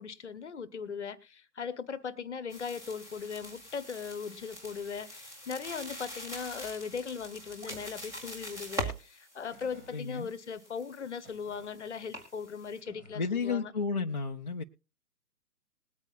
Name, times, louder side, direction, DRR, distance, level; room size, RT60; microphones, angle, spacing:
voice 1, 0.0-13.7, left 6 dB, 45° left, 1.1 m, -39 dB
sound 1, 2.5-12.8, equal, 5° right, 1.3 m, -43 dB
sound 2, 7.6-7.8 8.1-8.2 8.9-9.0 9.5-10.0 11.2-11.7 12.8-13.6, right 2 dB, 60° right, 5.2 m, -54 dB
voice 2, 9.9-10.3 13.1-14.6, left 5 dB, 30° left, 0.6 m, -32 dB
21.0 x 8.9 x 2.4 m
figure-of-eight pair, 135°, 48 cm